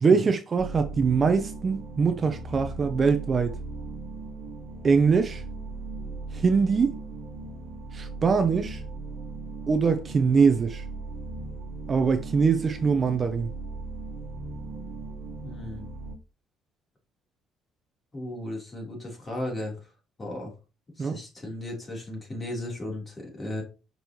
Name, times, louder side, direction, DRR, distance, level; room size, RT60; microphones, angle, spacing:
voice 1, 0.0-3.6 4.8-5.4 6.3-6.9 7.9-8.8 9.7-10.8 11.9-13.5 21.0-21.2, right 5 dB, 35° right, 0.6 m, -23 dB
sound 1, 0.6-16.2, right 3 dB, 55° right, 1.4 m, -38 dB
voice 2, 15.4-15.9 18.1-19.7 20.2-20.5 21.0-23.6, left 1 dB, 25° left, 3.5 m, -35 dB
5.9 x 5.3 x 3.0 m
cardioid pair, 110°, 0 cm